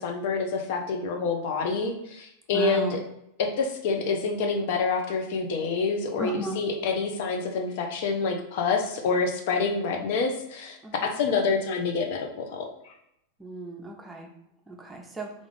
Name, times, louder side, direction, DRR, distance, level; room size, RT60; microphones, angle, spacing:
voice 1, 0.0-3.0 3.4-12.9, left 4 dB, 55° left, 4 dB, 0.5 m, -27 dB
voice 2, 2.5-3.0 6.2-6.6 10.8-11.2 13.4-14.3 14.7-15.3, right 2 dB, 10° right, 1 dB, 0.6 m, -35 dB
3.5 x 2.5 x 3.4 m, 0.80 s
figure-of-eight pair, 90°, 0 cm